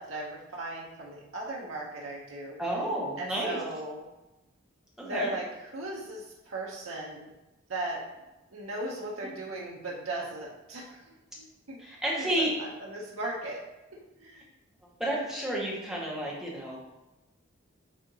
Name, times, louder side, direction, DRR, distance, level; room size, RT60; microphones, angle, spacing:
voice 1, 0.0-2.6 3.2-4.0 5.0-5.4 5.7-7.3 7.7-8.0 8.5-11.8 12.2-13.6 14.2-14.5, right 2 dB, 75° right, -3 dB, 0.8 m, -37 dB
voice 2, 2.6-3.6 5.0-5.3 11.8-12.5 15.0-16.8, right 1 dB, ahead, -5 dB, 1.2 m, -31 dB
8.4 x 2.8 x 4.0 m, 1.0 s
head